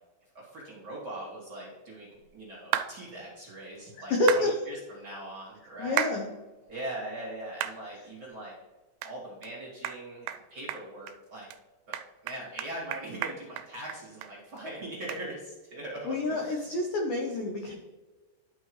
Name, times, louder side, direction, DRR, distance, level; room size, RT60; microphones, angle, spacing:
voice 1, 0.3-6.0 6.7-8.5 9.0-11.5 11.9-12.0 12.2-16.6, right 1 dB, 40° right, -6 dB, 2.0 m, -41 dB
sound 1, 2.7-2.9 4.3-4.5 6.0-6.2 6.7-6.8 7.6-7.8 8.3-8.4 9.0-9.1 9.4-9.5 9.8-10.0 10.3-10.4 10.7-11.2 11.5-11.6 11.9-14.3 14.6-14.7 15.1-15.2, right 11 dB, 85° right, 2.9 m, -33 dB
voice 2, 4.1-4.5 5.8-6.3 16.0-17.7, left 2 dB, 80° left, 1 dB, 2.0 m, -28 dB
11.0 x 6.3 x 3.2 m, 1.2 s
omnidirectional pair, 5.2 m